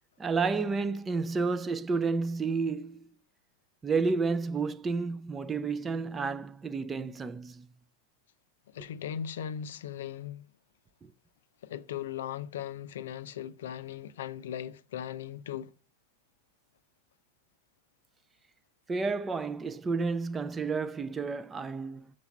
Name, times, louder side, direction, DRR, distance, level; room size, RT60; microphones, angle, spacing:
voice 1, 0.2-3.1 3.8-7.7 11.0-11.1 18.9-22.1, right 4 dB, 15° right, 0.6 m, -31 dB
voice 2, 8.7-10.5 11.6-15.7, left 9 dB, 60° left, 0.6 m, -38 dB
7.1 x 6.6 x 6.6 m
figure-of-eight pair, 90°, 0 cm